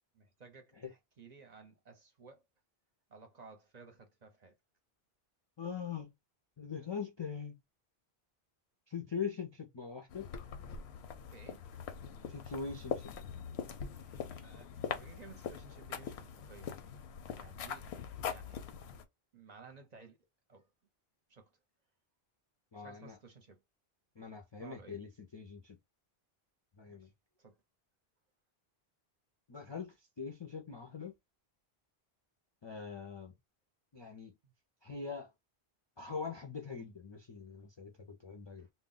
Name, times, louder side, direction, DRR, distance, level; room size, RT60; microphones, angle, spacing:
voice 1, 0.1-2.5 3.1-4.6 11.3-11.7 14.0-14.2 14.4-16.7 17.3-17.9 18.2-18.6 19.3-20.2 20.5-20.7 21.3-21.5 22.8-23.6 24.6-25.0 26.9-27.1 27.4-27.6 34.4-34.5 38.6-38.7, right 4 dB, 50° right, 0.6 m, -56 dB
voice 2, 5.6-6.1 6.6-7.6 8.9-10.3 12.3-13.2 22.7-23.2 24.2-25.8 26.8-27.1 29.5-31.1 32.6-33.3 33.9-34.3 34.8-35.3 36.0-38.7, left 6 dB, 45° left, 0.3 m, -42 dB
sound 1, 10.1-19.0, left 7 dB, 85° left, 0.8 m, -42 dB
2.2 x 2.0 x 3.6 m
omnidirectional pair, 1.0 m